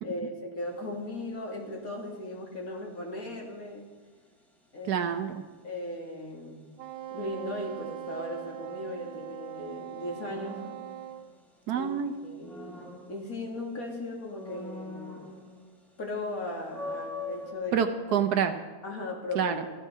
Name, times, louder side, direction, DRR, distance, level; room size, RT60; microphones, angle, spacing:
voice 1, 0.0-3.9 4.7-5.1 5.6-6.7 7.1-10.6 11.7-11.9 12.2-15.4 16.0-17.8 18.8-19.6, left 2 dB, 55° left, -1 dB, 2.7 m, -37 dB
sound 1, 0.6-1.0 10.3-11.7 12.1-13.8 14.3-15.8 16.2-16.3 16.7-17.5, left 2 dB, ahead, 1.6 m, -42 dB
voice 2, 4.9-5.4 11.7-12.1 17.7-18.6 19.3-19.6, right 8 dB, 70° right, 7 dB, 1.3 m, -27 dB
Wind instrument woodwind instrument, 6.8-11.3, right 11 dB, 90° right, 1.5 m, -41 dB
14.5 x 12.0 x 5.6 m, 1.3 s
omnidirectional pair, 1.9 m